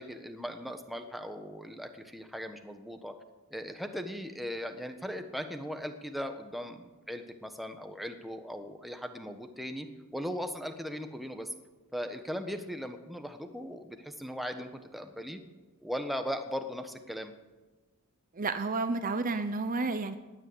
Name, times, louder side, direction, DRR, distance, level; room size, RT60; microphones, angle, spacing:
voice 1, 0.0-3.1 3.5-9.9 10.1-11.5 11.9-15.4 15.8-17.3, equal, ahead, 6 dB, 1.2 m, -38 dB
voice 2, 18.3-20.1, right 3 dB, 40° right, 10 dB, 0.9 m, -31 dB
18.5 x 9.7 x 7.9 m, 1.2 s
head